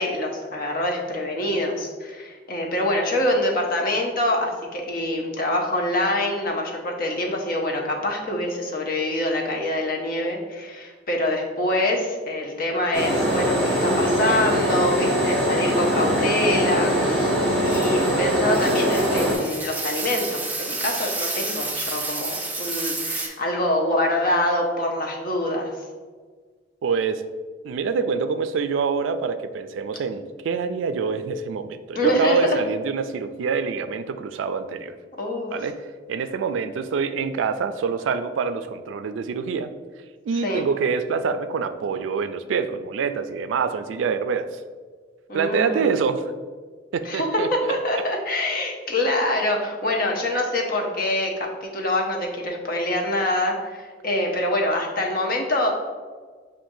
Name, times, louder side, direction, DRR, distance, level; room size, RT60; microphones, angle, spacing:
voice 1, 0.0-17.4 17.6-25.7 31.9-32.6 35.2-35.7 40.4-40.7 45.3-46.0 47.0-55.7, left 1 dB, 50° left, 0 dB, 0.7 m, -25 dB
sound 1, 12.9-19.3, equal, 10° left, 1.2 m, -22 dB
sound 2, 17.7-23.3, right 3 dB, 10° right, 0.6 m, -30 dB
voice 2, 26.8-27.2 27.6-34.9 35.5-35.8 36.1-39.7 40.3-44.6 45.3-46.2 46.9-47.7, right 5 dB, 85° right, 9 dB, 0.3 m, -25 dB
7.4 x 2.5 x 2.6 m, 1.5 s
head